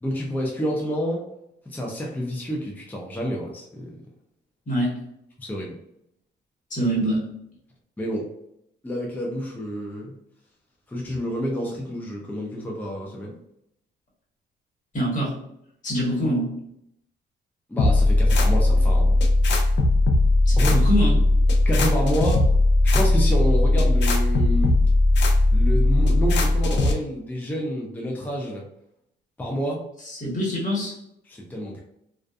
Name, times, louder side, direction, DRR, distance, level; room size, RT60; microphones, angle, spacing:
voice 1, 0.0-1.2 1.7-3.9 5.4-5.7 6.9-7.0 8.0-8.3 8.8-10.2 10.9-13.4 17.7-19.2 20.6-20.8 21.7-22.4 22.8-24.8 25.5-28.6 29.4-29.8 31.3-31.8, equal, 10° left, -2 dB, 0.5 m, -29 dB
voice 2, 6.7-7.2 14.9-15.3 15.8-16.5 20.4-21.2 30.0-31.0, equal, 40° left, -4 dB, 1.3 m, -24 dB
sound 1, 17.8-26.9, left 2 dB, 65° left, 0.6 m, -18 dB
2.5 x 2.4 x 2.3 m, 0.77 s
cardioid pair, 90°, 20 cm